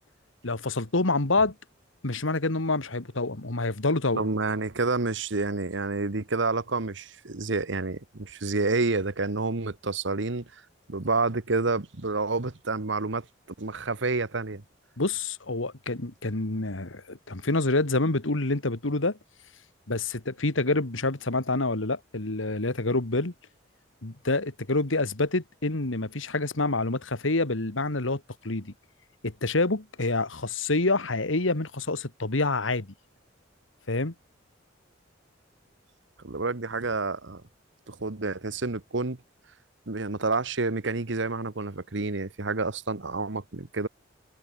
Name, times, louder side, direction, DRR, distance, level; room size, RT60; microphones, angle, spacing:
voice 1, 0.4-1.6 2.0-4.2 15.0-19.2 19.9-23.3 24.0-28.7 29.2-32.9 33.9-34.1, left 2 dB, 80° left, 2.0 m, -27 dB
voice 2, 4.1-10.6 10.9-13.3 13.6-14.6 36.2-37.4 37.9-39.2 39.9-43.9, right 3 dB, 70° right, 1.3 m, -29 dB
head